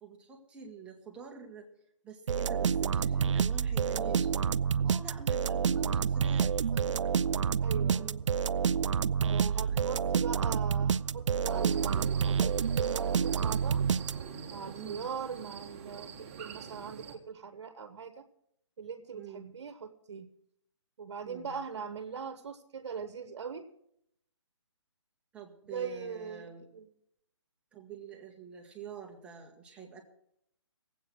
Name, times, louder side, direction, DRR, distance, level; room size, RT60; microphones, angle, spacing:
voice 1, 0.0-1.7 2.0-4.3 4.8-6.8 7.7-8.2 9.2-10.0 14.7-15.1 19.1-19.5 21.2-21.6 25.3-26.6 27.7-30.0, right 6 dB, 5° right, 0 dB, 1.5 m, -47 dB
sound 1, 2.3-14.5, right 7 dB, 90° right, 0.4 m, -28 dB
voice 2, 7.6-8.1 9.2-13.9 14.5-18.2 18.8-20.3 21.0-23.6 25.7-26.9, right 6 dB, 55° right, 9 dB, 1.3 m, -41 dB
sound 2, 11.4-17.2, right 6 dB, 25° right, 1.4 m, -45 dB
18.5 x 8.4 x 6.2 m, 0.73 s
hypercardioid pair, 165°, 15 cm